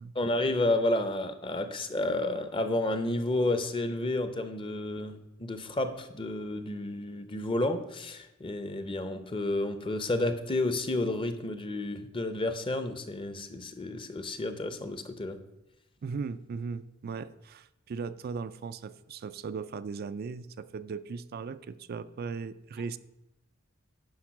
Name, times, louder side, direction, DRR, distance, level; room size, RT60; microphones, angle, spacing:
voice 1, 0.1-15.4, left 2 dB, 25° left, 10 dB, 0.7 m, -31 dB
voice 2, 16.0-23.0, right 5 dB, 50° right, 13 dB, 0.4 m, -38 dB
10.5 x 5.2 x 6.0 m, 0.95 s
head